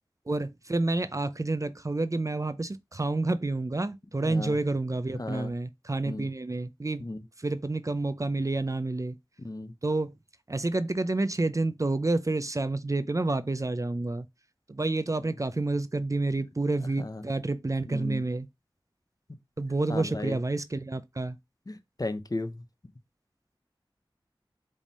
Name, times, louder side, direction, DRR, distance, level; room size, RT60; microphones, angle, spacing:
voice 1, 0.3-7.0 7.4-9.2 9.8-10.2 10.5-14.3 14.7-18.5 19.6-21.4, right 2 dB, 35° right, 0.6 m, -29 dB
voice 2, 4.2-4.6 5.1-5.5 6.0-6.3 7.0-7.2 9.4-9.7 17.0-17.2 17.9-18.3 19.9-20.4 21.7-22.6, left 2 dB, 45° left, 0.9 m, -35 dB
5.1 x 3.5 x 5.4 m
wide cardioid pair, 45°, 9 cm